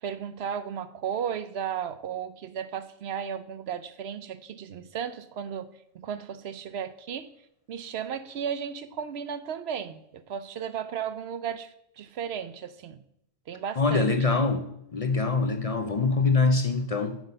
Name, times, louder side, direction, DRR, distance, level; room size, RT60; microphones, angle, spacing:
voice 1, 0.0-5.7 5.9-7.3 7.7-13.0 13.5-14.1, right 8 dB, 70° right, 12 dB, 0.9 m, -34 dB
voice 2, 13.8-14.7 14.9-17.2, left 3 dB, 40° left, 7 dB, 0.6 m, -24 dB
9.1 x 6.3 x 5.4 m, 0.76 s
omnidirectional pair, 1.1 m